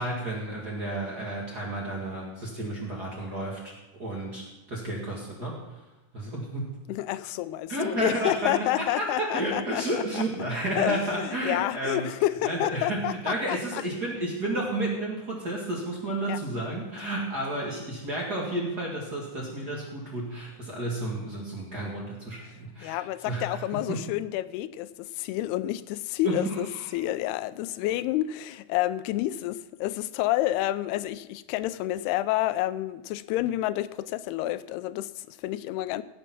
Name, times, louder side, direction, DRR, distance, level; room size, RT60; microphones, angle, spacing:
voice 1, 0.0-3.7 4.0-5.8 6.1-6.7 7.7-12.1 12.4-24.0 26.2-27.0, right 1 dB, 35° right, -3 dB, 1.8 m, -32 dB
voice 2, 6.9-10.2 10.8-13.8 16.3-16.4 22.8-36.0, left 14 dB, 90° left, 15 dB, 2.6 m, -29 dB
16.5 x 7.1 x 5.9 m, 1.1 s
omnidirectional pair, 4.5 m